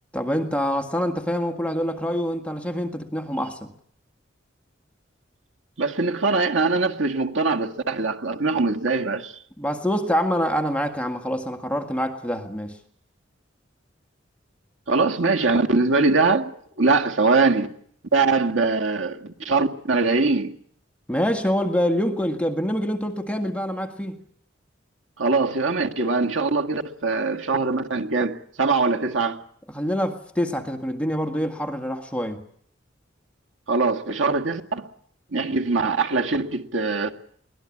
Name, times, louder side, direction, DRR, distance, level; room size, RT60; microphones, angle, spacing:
voice 1, 0.1-3.7 9.6-12.8 21.1-24.2 29.7-32.4, equal, 5° left, 1.8 m, -25 dB
voice 2, 5.8-9.3 14.9-16.5 16.8-17.7 18.1-20.6 25.2-29.4 33.7-34.9 35.3-37.1, right 3 dB, 80° right, 2.0 m, -22 dB
23.5 x 18.5 x 8.6 m
head